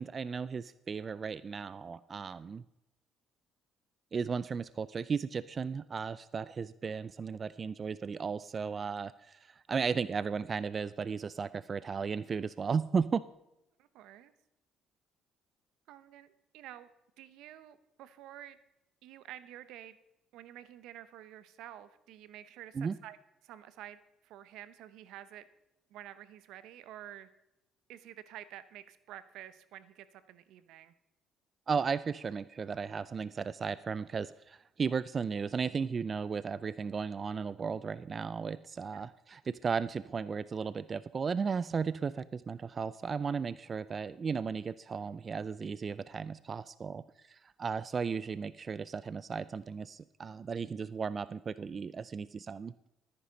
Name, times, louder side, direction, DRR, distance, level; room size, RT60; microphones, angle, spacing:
voice 1, 0.0-2.6 4.1-13.2 22.8-22.9 31.7-52.7, right 5 dB, 40° right, 17 dB, 0.4 m, -35 dB
voice 2, 13.8-14.3 15.9-16.9 17.2-18.6 19.0-20.0 20.3-23.2 23.4-25.4 25.9-27.3 27.9-30.9 38.9-39.0, right 12 dB, 80° right, 14 dB, 0.8 m, -50 dB
13.0 x 9.8 x 5.1 m, 0.89 s
supercardioid pair, 80°, 0 cm